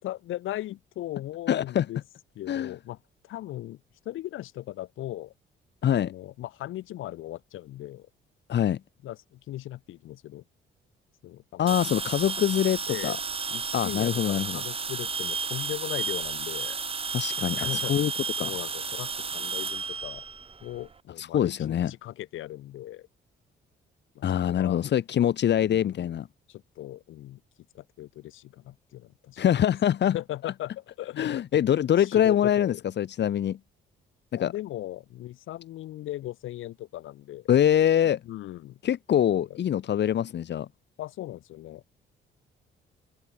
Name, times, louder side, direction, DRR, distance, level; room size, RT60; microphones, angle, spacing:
voice 1, 0.0-2.0 2.3-3.0 3.2-3.8 4.0-5.3 5.9-8.1 9.0-10.4 11.2-11.8 12.9-13.2 13.5-16.8 17.5-18.0 18.4-20.2 20.6-23.1 24.1-24.8 25.6-26.1 26.5-27.4 27.7-29.4 30.1-32.8 34.4-37.5 38.2-38.8 39.3-39.6 41.0-41.8, left 14 dB, 85° left, 6.1 m, -38 dB
voice 2, 1.5-1.8 2.5-2.7 5.8-6.1 8.5-8.8 11.6-13.2 13.7-14.6 17.1-18.1 18.4-18.5 21.2-21.9 24.2-26.3 29.4-30.2 31.2-33.6 34.3-34.5 37.5-38.2 38.8-40.7, left 10 dB, 60° left, 1.6 m, -24 dB
sound 1, 11.7-20.9, right 5 dB, 30° right, 1.2 m, -32 dB
cardioid pair, 90°, 20 cm